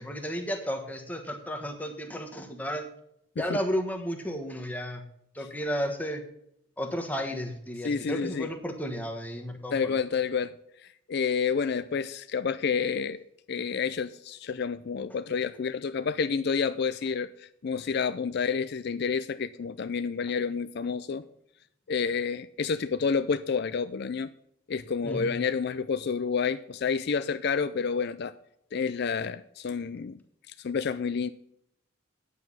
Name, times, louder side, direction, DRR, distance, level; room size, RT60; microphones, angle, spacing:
voice 1, 0.0-2.9 3.4-5.0 5.3-6.2 6.8-10.0 25.0-25.4, equal, 10° left, 1.3 m, -33 dB
voice 2, 7.8-8.5 9.7-10.5 11.1-13.2 13.5-21.2 21.9-24.3 24.7-28.3 28.7-30.1 30.5-31.3, left 6 dB, 55° left, 0.4 m, -29 dB
9.2 x 8.2 x 5.5 m
head